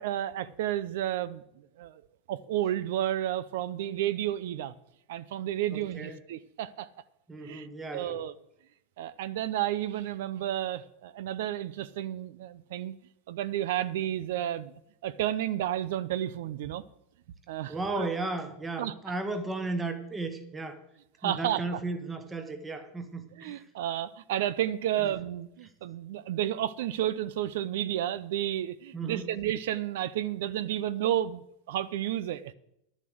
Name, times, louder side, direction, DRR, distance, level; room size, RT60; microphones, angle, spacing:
voice 1, 0.0-1.4 1.8-2.0 2.3-4.7 5.1-6.9 7.4-7.7 7.9-8.4 9.0-12.9 13.3-14.7 15.0-16.8 17.5-18.1 18.8-18.9 21.2-21.8 23.4-32.5, right 12 dB, 65° right, 16 dB, 0.5 m, -31 dB
voice 2, 5.7-6.2 7.3-8.2 17.7-20.8 21.2-23.6 28.9-29.3, right 3 dB, 10° right, 9 dB, 1.2 m, -35 dB
11.5 x 7.2 x 7.8 m, 0.80 s
supercardioid pair, 175°, 0 cm